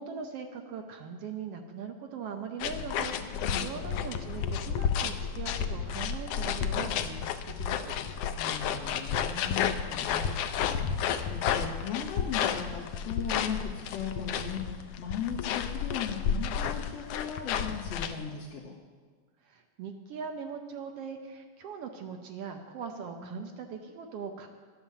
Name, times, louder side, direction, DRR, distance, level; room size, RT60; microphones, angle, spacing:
voice 1, 0.0-8.0 19.4-24.5, right 6 dB, 70° right, 4 dB, 1.6 m, -40 dB
sound 1, 2.6-18.1, left 8 dB, 90° left, 1.3 m, -31 dB
voice 2, 3.4-3.8 8.4-18.7 23.1-23.5, left 7 dB, 60° left, -6 dB, 2.6 m, -38 dB
11.5 x 9.0 x 7.2 m, 1.5 s
omnidirectional pair, 3.4 m